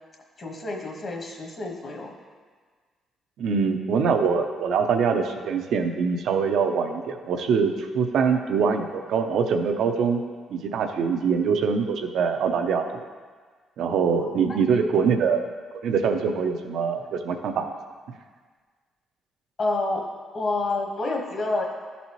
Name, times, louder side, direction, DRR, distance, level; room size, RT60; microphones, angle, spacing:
voice 1, 0.4-2.1 14.2-14.6 19.6-20.0 20.3-21.6, left 2 dB, 45° left, 0 dB, 1.3 m, -28 dB
voice 2, 3.4-10.2 10.5-12.8 13.8-15.4 15.8-17.7, right 6 dB, 75° right, 5 dB, 0.6 m, -23 dB
11.5 x 4.1 x 3.0 m, 1.5 s
cardioid pair, 90°, 0 cm